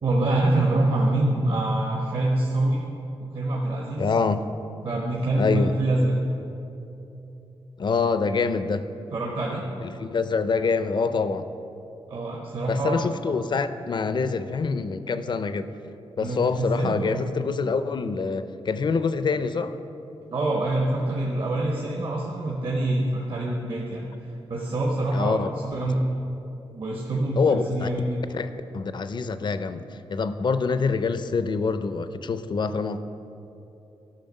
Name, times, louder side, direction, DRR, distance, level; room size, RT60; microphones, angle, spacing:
voice 1, 0.0-2.8 3.2-4.1 4.8-6.1 9.1-9.6 12.1-13.0 16.2-17.3 20.3-26.0 26.7-28.5, right 1 dB, 60° right, -2 dB, 1.2 m, -25 dB
voice 2, 4.0-4.5 5.4-5.8 7.8-8.9 9.8-11.5 12.7-15.7 16.2-19.8 25.1-25.5 27.4-27.9 28.3-28.5 28.7-33.0, left 4 dB, 50° left, 11 dB, 0.5 m, -25 dB
13.0 x 6.3 x 5.4 m, 2.9 s
wide cardioid pair, 120°, 10 cm